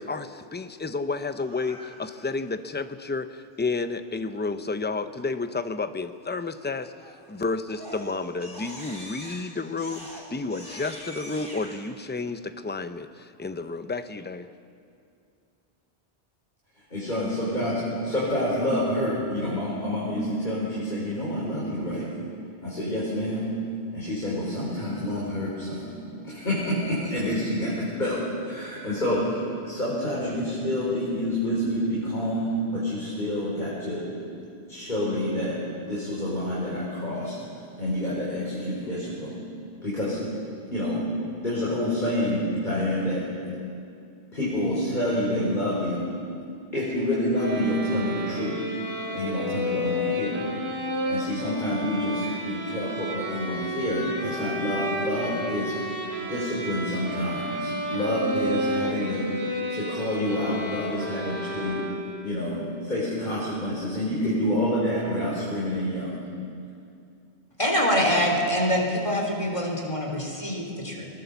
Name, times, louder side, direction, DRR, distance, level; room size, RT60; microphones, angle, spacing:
voice 1, 0.0-6.9 7.3-14.5, left 3 dB, 10° left, 10 dB, 0.6 m, -31 dB
Crying sobbing, 1.4-2.3 7.0-7.3 7.7-11.8, equal, 20° right, 3.9 m, -43 dB
voice 2, 16.9-17.7 18.0-22.1 22.6-23.5 23.9-25.9 26.2-28.2 28.4-34.0 34.7-35.6 35.8-37.3 37.8-39.3 39.8-40.2 40.7-41.0 41.4-43.3 44.3-46.0 46.7-48.6 49.1-50.4 51.1-55.7 56.2-61.8 62.2-66.2, left 1 dB, 45° left, -8 dB, 5.3 m, -28 dB
sound 1, 47.3-62.3, equal, 70° right, 4.1 m, -31 dB
voice 3, 67.6-71.1, equal, 30° left, 0 dB, 3.7 m, -25 dB
21.5 x 20.5 x 7.0 m, 2.4 s
omnidirectional pair, 1.1 m